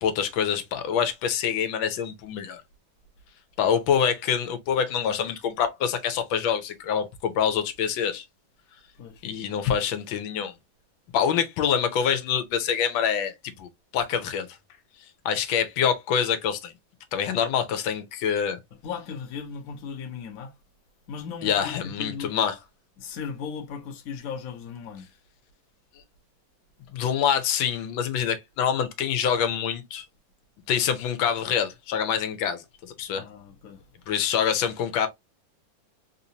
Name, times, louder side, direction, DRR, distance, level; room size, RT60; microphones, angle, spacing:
voice 1, 0.0-2.6 3.6-8.2 9.2-10.5 11.1-14.5 15.2-16.7 17.1-18.6 21.4-22.5 26.9-30.0 30.7-33.2 34.1-35.1, left 8 dB, 85° left, 1.5 m, -26 dB
voice 2, 9.0-9.3 18.8-20.5 21.1-22.4 23.0-25.1 33.1-33.9, left 6 dB, 55° left, 1.1 m, -37 dB
3.7 x 2.6 x 2.8 m
omnidirectional pair, 2.1 m